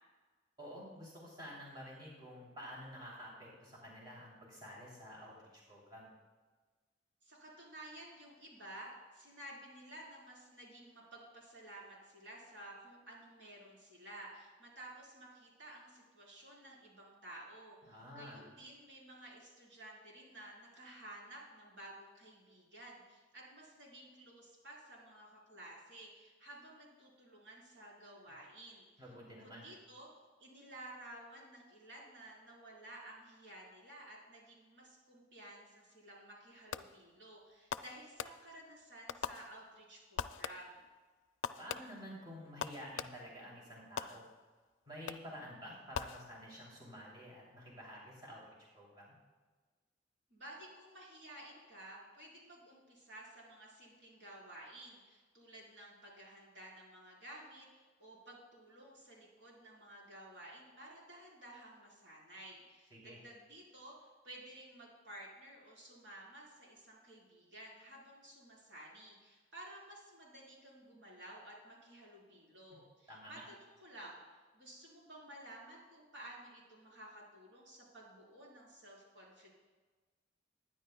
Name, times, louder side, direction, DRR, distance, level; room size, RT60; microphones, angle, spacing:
voice 1, 0.6-6.1 17.8-18.4 29.0-29.7 41.6-44.2 44.9-49.1 62.9-63.2 73.1-73.4, equal, 25° right, -5 dB, 3.1 m, -50 dB
voice 2, 7.2-28.9 29.3-30.1 30.4-40.8 50.3-57.7 58.0-74.2 74.5-79.5, right 1 dB, 70° right, -4 dB, 4.1 m, -53 dB
Fireworks, 36.7-37.2 37.7-38.7 39.1-39.9 40.2-40.9 41.4-43.4 44.0-44.6 45.1-45.5 45.9-46.7, left 7 dB, 90° left, 0.4 m, -44 dB
21.5 x 10.0 x 2.3 m, 1.3 s
head